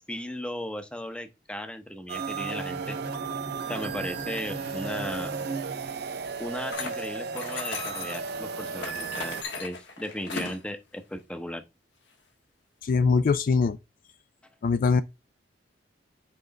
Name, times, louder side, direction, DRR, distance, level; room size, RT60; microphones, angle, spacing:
voice 1, 0.1-3.0 3.7-5.3 6.4-11.6, left 1 dB, 5° left, 0.8 m, -36 dB
sound 1, 2.1-9.4, right 5 dB, 65° right, 0.6 m, -35 dB
Bowed string instrument, 2.2-6.3, right 2 dB, 45° right, 1.1 m, -38 dB
sound 2, 6.7-8.3 8.8-10.6, left 4 dB, 80° left, 1.5 m, -37 dB
voice 2, 12.8-13.8 14.6-15.0, left 4 dB, 50° left, 0.3 m, -22 dB
5.8 x 3.8 x 5.1 m
head